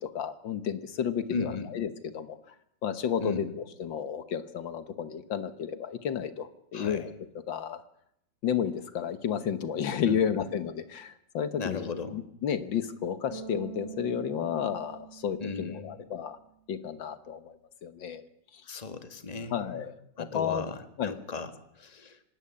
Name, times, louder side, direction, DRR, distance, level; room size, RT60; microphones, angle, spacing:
voice 1, 0.0-2.4 2.8-3.5 3.8-7.1 7.5-7.8 8.4-16.4 16.7-17.6 17.8-18.2 18.5-18.6 19.5-20.7 21.0-21.2, left 8 dB, 75° left, 13 dB, 1.9 m, -32 dB
voice 2, 1.3-1.7 3.2-3.5 6.7-7.1 10.1-10.5 11.6-12.2 15.4-16.0 18.6-19.8 20.2-22.2, left 4 dB, 20° left, 10 dB, 1.7 m, -36 dB
Bass guitar, 13.3-16.4, right 9 dB, 35° right, 2.8 m, -45 dB
25.5 x 13.0 x 9.8 m, 0.76 s
omnidirectional pair, 2.1 m